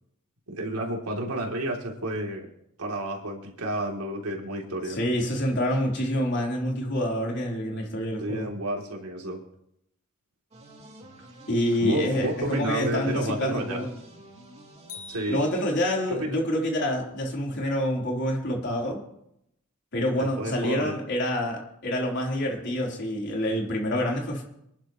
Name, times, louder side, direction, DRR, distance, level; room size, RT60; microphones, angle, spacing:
voice 1, 0.5-2.5 2.8-5.0 8.2-9.4 11.8-13.9 15.1-15.4 16.1-16.4 20.2-20.9, right 1 dB, 80° right, 0 dB, 3.1 m, -31 dB
voice 2, 4.9-8.5 11.5-13.9 15.3-19.0 19.9-24.4, equal, 50° left, -1 dB, 3.8 m, -27 dB
sound 1, 10.5-15.7, right 1 dB, 30° right, 2.8 m, -49 dB
sound 2, 14.9-16.3, left 4 dB, 35° left, 4.1 m, -45 dB
26.5 x 11.0 x 3.1 m, 0.76 s
head